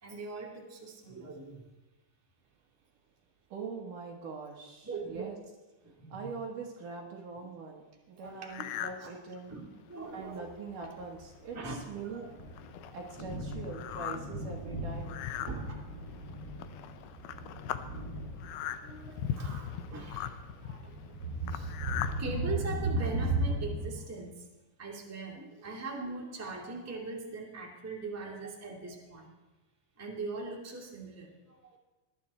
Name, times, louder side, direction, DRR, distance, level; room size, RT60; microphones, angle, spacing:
voice 1, 0.0-1.6 4.8-5.3 5.8-6.3 8.2-8.7 9.0-9.1 9.5-10.5 11.5-12.3 12.8-12.9 15.4-15.8 16.6-16.7 17.2-17.3 18.8-20.3 20.6-20.9 21.5-24.3 24.8-29.3 30.0-31.3, right 3 dB, 20° right, -2 dB, 0.3 m, -41 dB
voice 2, 3.5-5.4 6.1-9.5 10.1-12.3 12.9-15.2, right 4 dB, 65° right, 1 dB, 2.2 m, -42 dB
sound 1, 8.5-9.0 9.5-9.6 10.2-10.3 10.6-10.8 11.5-11.6 12.0-22.2, left 10 dB, 90° left, 2.2 m, -39 dB
Thunder, 10.2-23.9, right 2 dB, 40° right, 4.9 m, -37 dB
20.5 x 12.0 x 4.3 m, 1.1 s
omnidirectional pair, 5.4 m